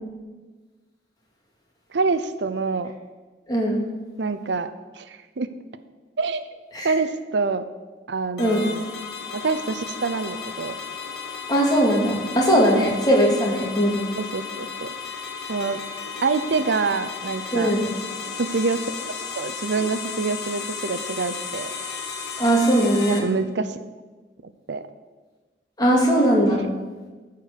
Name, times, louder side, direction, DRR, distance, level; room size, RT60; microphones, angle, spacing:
voice 1, 1.9-2.9 4.2-4.7 5.0-5.5 6.2-6.4 6.8-7.6 8.1-8.9 9.3-10.8 12.7-12.9 14.2-14.9 15.5-15.8 16.2-17.7 18.4-18.8 19.3-21.7 23.1-23.8 24.7-24.8, right 4 dB, 85° right, 12 dB, 0.6 m, -26 dB
voice 2, 3.5-3.8 6.7-7.0 8.4-8.6 11.5-14.0 17.5-17.9 22.4-23.3 25.8-26.6, equal, 25° left, -2 dB, 2.2 m, -19 dB
sound 1, 8.4-23.2, left 6 dB, 65° left, 1.6 m, -34 dB
14.0 x 4.7 x 6.8 m, 1.3 s
head